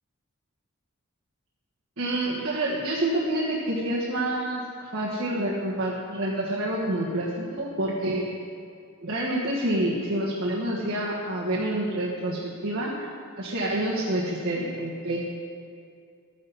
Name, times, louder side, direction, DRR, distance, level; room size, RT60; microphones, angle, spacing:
voice 1, 2.0-8.3 9.0-13.1 13.4-15.2, right 1 dB, 70° right, -6 dB, 1.6 m, -28 dB
12.5 x 10.5 x 4.2 m, 2.3 s
head